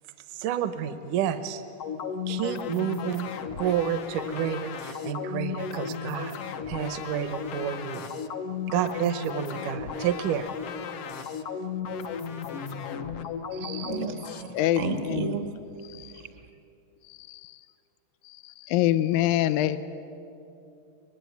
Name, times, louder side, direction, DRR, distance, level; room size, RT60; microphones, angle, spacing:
voice 1, 0.4-1.6 2.3-3.3 3.6-6.4 6.7-8.1 8.7-10.5, right 9 dB, 75° right, 10 dB, 2.3 m, -29 dB
sound 1, 1.8-14.4, left 6 dB, 60° left, 1.7 m, -35 dB
voice 2, 13.5-15.5 16.1-16.3, right 5 dB, 50° right, 7 dB, 0.8 m, -33 dB
voice 3, 14.5-15.4 15.9-16.1 17.1-17.6 18.3-19.8, left 13 dB, 75° left, 12 dB, 2.1 m, -26 dB
24.5 x 20.5 x 9.4 m, 2.7 s
omnidirectional pair, 3.7 m